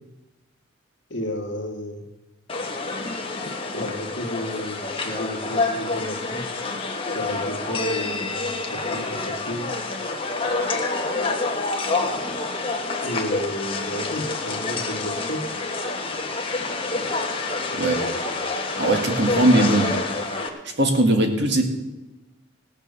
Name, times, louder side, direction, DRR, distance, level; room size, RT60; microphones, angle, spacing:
voice 1, 1.1-2.0 3.7-6.4 7.1-9.7 13.0-15.4, left 1 dB, 55° left, 2 dB, 2.0 m, -32 dB
sound 1, 2.5-20.5, left 3 dB, 25° left, 1.2 m, -27 dB
voice 2, 18.8-19.9 20.8-21.6, right 1 dB, 55° right, 3 dB, 1.8 m, -19 dB
17.0 x 7.2 x 6.8 m, 1.1 s
head